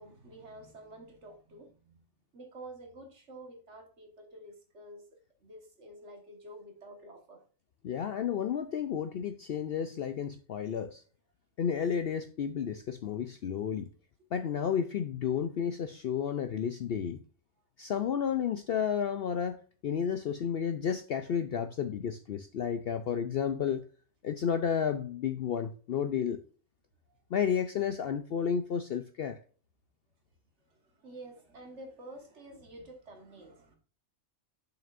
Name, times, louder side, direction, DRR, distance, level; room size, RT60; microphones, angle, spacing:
voice 1, 0.0-2.0 2.3-7.4 30.7-33.8, right 1 dB, 55° right, 1.8 m, -49 dB
voice 2, 7.8-11.0 11.6-13.9 14.3-17.2 17.8-23.8 24.2-26.4 27.3-29.4, left 7 dB, 60° left, 0.6 m, -32 dB
7.1 x 5.9 x 2.5 m
omnidirectional pair, 1.4 m